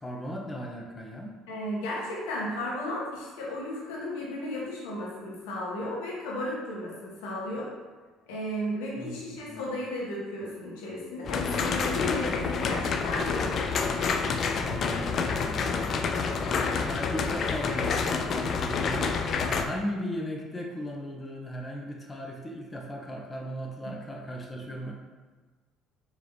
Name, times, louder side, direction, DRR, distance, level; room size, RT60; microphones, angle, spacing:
voice 1, 0.0-1.4 9.0-9.6 14.5-16.0 16.4-24.9, equal, 25° left, 0 dB, 0.9 m, -37 dB
voice 2, 1.5-7.7 8.3-13.7 23.8-24.0, left 1 dB, 80° left, -4 dB, 1.2 m, -34 dB
sound 1, 11.2-19.6, left 5 dB, 50° left, 0.4 m, -28 dB
4.9 x 3.1 x 3.0 m, 1.3 s
hypercardioid pair, 65°, 0 cm